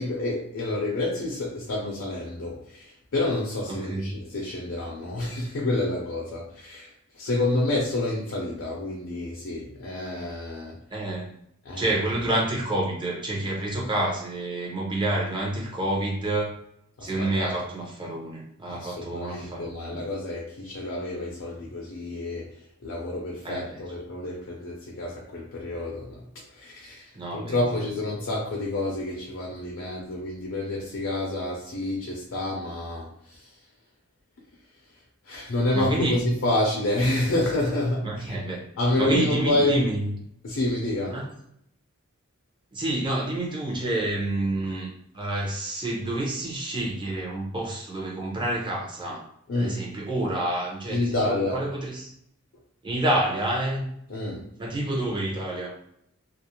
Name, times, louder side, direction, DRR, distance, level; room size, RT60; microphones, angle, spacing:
voice 1, 0.0-6.9 7.1-10.8 11.6-12.0 17.0-17.5 18.7-22.5 22.8-26.2 26.6-27.0 27.3-33.4 35.3-38.4 38.8-39.9 40.4-41.3 49.5-49.8 50.9-51.7 54.1-54.5, left 2 dB, 60° left, -2 dB, 0.6 m, -28 dB
voice 2, 3.7-4.1 10.9-11.3 11.8-16.5 17.0-19.9 23.4-23.8 27.1-27.6 35.7-36.2 38.0-38.6 39.0-40.1 41.1-41.3 42.7-44.9 45.1-49.2 49.5-52.1 52.8-53.8 54.6-55.7, right 1 dB, 20° right, -3 dB, 0.6 m, -28 dB
2.4 x 2.0 x 2.9 m, 0.72 s
head